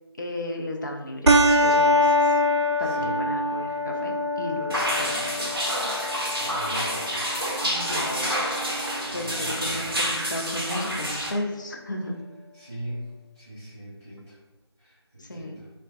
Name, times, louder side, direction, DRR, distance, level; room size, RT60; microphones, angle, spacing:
voice 1, 0.2-2.4 2.8-5.6 7.6-8.2 9.1-12.1 15.2-15.6, left 1 dB, 45° left, 1 dB, 0.4 m, -34 dB
sound 1, 1.3-10.2, left 1 dB, 85° right, 0.4 m, -25 dB
voice 2, 2.8-3.1 6.3-7.3 7.6-9.8 12.5-13.1 13.4-14.3 14.8-15.5, equal, 10° right, -15 dB, 0.6 m, -40 dB
sound 2, 4.7-11.3, equal, 55° right, 0.7 m, -28 dB
3.3 x 2.2 x 2.4 m, 1.1 s
figure-of-eight pair, 165°, 14 cm